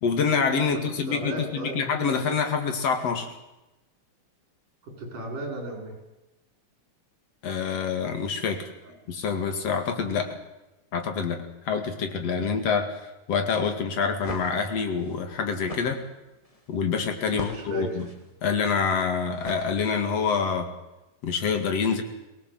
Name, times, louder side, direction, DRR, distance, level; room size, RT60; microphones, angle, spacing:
voice 1, 0.0-3.3 7.4-8.6 9.1-10.4 10.9-16.0 16.7-18.1 18.4-20.7 21.2-22.0, left 5 dB, 55° left, 6 dB, 3.1 m, -26 dB
voice 2, 1.1-1.8 4.8-5.9 8.8-8.9 17.3-18.0, right 1 dB, 80° right, 2 dB, 7.5 m, -35 dB
sound 1, 14.1-20.2, left 2 dB, 15° left, 1.2 m, -43 dB
22.5 x 18.5 x 7.8 m, 1.0 s
omnidirectional pair, 3.7 m